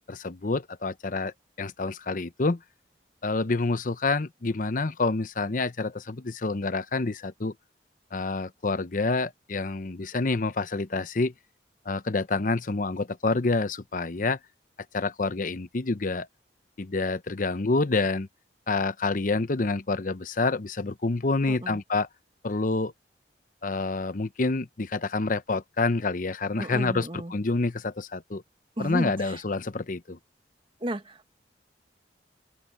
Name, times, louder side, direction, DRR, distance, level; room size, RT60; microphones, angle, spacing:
voice 1, 0.0-2.6 3.2-7.5 8.1-11.3 11.9-14.4 14.9-16.3 16.8-18.3 18.7-22.1 22.4-22.9 23.6-28.4 28.8-30.2, left 3 dB, 50° left, 0.8 m, -28 dB
voice 2, 21.5-21.8 26.6-27.3 28.8-29.4 30.8-31.4, right 1 dB, 30° right, 1.6 m, -33 dB
open air
head